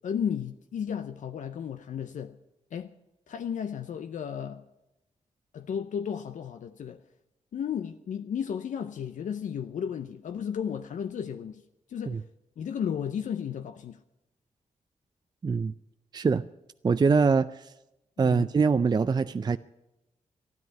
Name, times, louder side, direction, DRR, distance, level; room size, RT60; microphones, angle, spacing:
voice 1, 0.0-2.4 2.7-2.9 3.3-4.6 5.5-7.0 7.5-11.6 11.9-12.2 12.6-14.0 18.2-18.5, left 8 dB, 75° left, 0.6 m, -34 dB
voice 2, 15.4-15.7 16.1-16.4 16.8-17.7 18.2-19.6, right 5 dB, 30° right, 0.4 m, -23 dB
12.5 x 10.5 x 9.3 m
cardioid pair, 65°, 13 cm